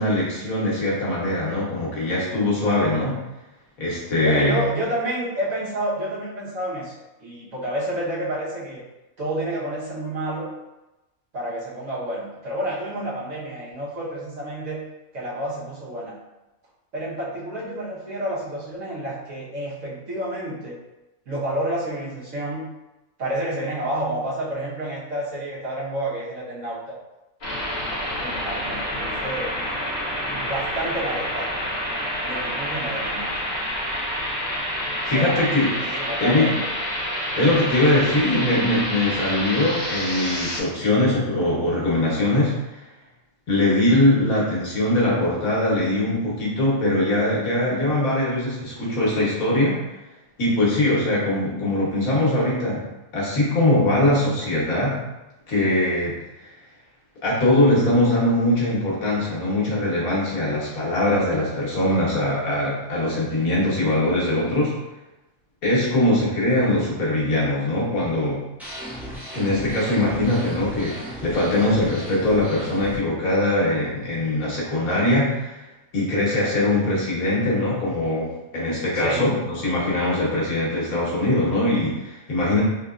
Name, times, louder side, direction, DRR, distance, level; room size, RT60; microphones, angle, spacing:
voice 1, 0.0-3.2 3.8-4.6 35.1-35.7 36.2-36.5 37.1-42.8 43.5-49.8 50.4-52.8 53.1-55.0 55.5-56.5 57.2-64.7 65.6-68.4 69.3-75.6 75.9-82.6, left 1 dB, 90° left, -5 dB, 1.5 m, -22 dB
voice 2, 4.2-6.9 7.2-8.8 9.2-10.5 11.3-14.8 15.1-16.2 16.9-20.8 21.3-22.7 23.2-26.9 28.1-29.5 30.2-31.5 32.2-33.3 35.0-35.5 35.7-36.7 78.9-79.3, right 1 dB, 70° right, -8 dB, 1.5 m, -29 dB
sound 1, 27.4-40.6, equal, 50° left, 1.2 m, -28 dB
sound 2, 68.6-73.0, equal, ahead, 0.4 m, -36 dB
3.8 x 2.8 x 2.4 m, 1.0 s
omnidirectional pair, 1.4 m